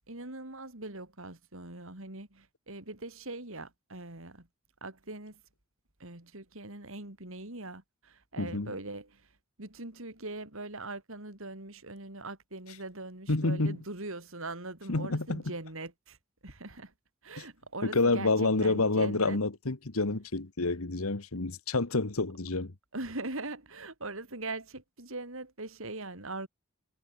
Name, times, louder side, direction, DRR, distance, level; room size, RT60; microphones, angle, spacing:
voice 1, 0.1-4.5 4.8-5.4 6.0-9.3 9.6-16.2 16.4-16.9 17.2-19.4 22.9-26.5, right 2 dB, 60° right, 3.6 m, -41 dB
voice 2, 8.4-8.7 13.3-13.8 14.9-15.4 17.8-22.7, left 3 dB, 75° left, 1.5 m, -28 dB
head